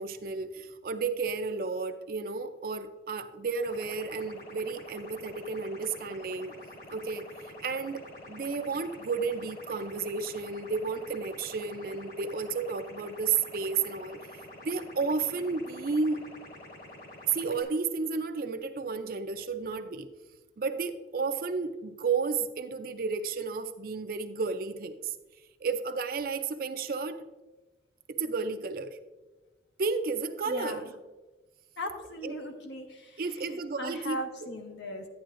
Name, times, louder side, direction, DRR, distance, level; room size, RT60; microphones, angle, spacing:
voice 1, 0.0-6.5 6.9-14.2 14.6-16.2 17.3-20.1 20.6-25.1 25.6-27.2 28.1-29.0 29.8-30.9 32.2-32.3 33.2-34.2, right 4 dB, 50° right, 0.5 m, -32 dB
sound 1, 3.6-17.6, left 1 dB, 55° left, 3.1 m, -48 dB
voice 2, 30.5-30.8 31.8-35.1, left 1 dB, 75° left, 1.3 m, -39 dB
11.5 x 9.4 x 2.5 m
head